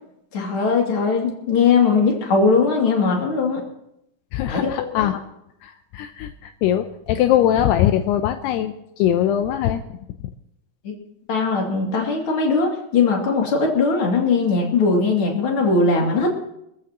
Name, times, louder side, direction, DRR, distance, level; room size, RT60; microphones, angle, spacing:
voice 1, 0.3-3.6 4.5-5.1 10.8-10.9 11.3-16.3, left 4 dB, 35° left, -1 dB, 3.0 m, -20 dB
voice 2, 4.3-5.2 5.6-9.8, left 11 dB, 80° left, 8 dB, 2.6 m, -21 dB
26.5 x 14.5 x 3.0 m, 0.80 s
omnidirectional pair, 4.9 m